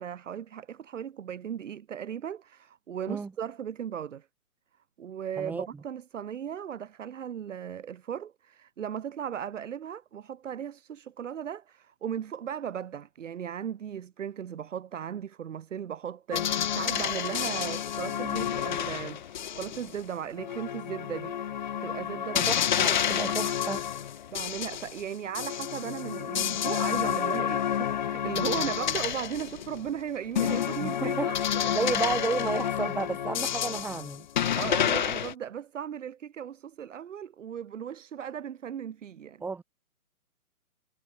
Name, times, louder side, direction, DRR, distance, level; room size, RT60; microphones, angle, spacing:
voice 1, 0.0-4.3 5.0-19.2 19.5-22.5 22.8-23.2 23.4-23.5 24.3-31.3 31.6-31.7 34.5-39.4, right 9 dB, 55° right, 3.1 m, -37 dB
voice 2, 5.4-5.7 22.3-23.8 30.8-34.2 39.4-39.6, right 4 dB, 5° right, 1.3 m, -32 dB
sound 1, 16.3-20.0 20.4-25.0 25.3-29.9 30.3-35.3, left 9 dB, 35° left, 0.6 m, -29 dB
hypercardioid pair, 150°, 44 cm